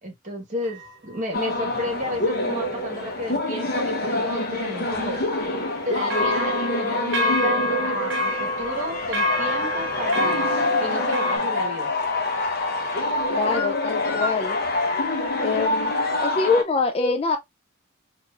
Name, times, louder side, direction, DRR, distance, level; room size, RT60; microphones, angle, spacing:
voice 1, 0.0-5.2 5.8-10.5 10.8-11.9, equal, 35° right, 1.2 m, -32 dB
sound 1, 0.6-1.2 6.1-11.4, left 1 dB, 55° right, 0.6 m, -27 dB
sound 2, 1.3-16.6, left 2 dB, 45° left, 0.8 m, -26 dB
voice 2, 13.3-14.6 15.4-15.9 16.2-17.4, left 4 dB, 30° left, 0.3 m, -24 dB
4.4 x 2.5 x 2.4 m
head